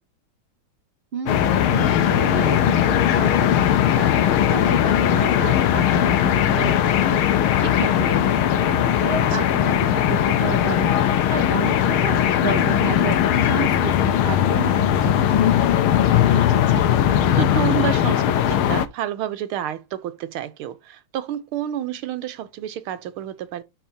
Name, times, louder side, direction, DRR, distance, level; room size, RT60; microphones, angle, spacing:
voice 1, 1.1-3.6 3.9-15.5, right 6 dB, 60° right, 0.6 m, -32 dB
sound 1, 1.3-18.9, left 10 dB, 90° left, 1.6 m, -19 dB
voice 2, 16.3-16.9 17.4-23.6, right 11 dB, 85° right, 1.7 m, -30 dB
12.0 x 4.1 x 2.8 m
omnidirectional pair, 2.3 m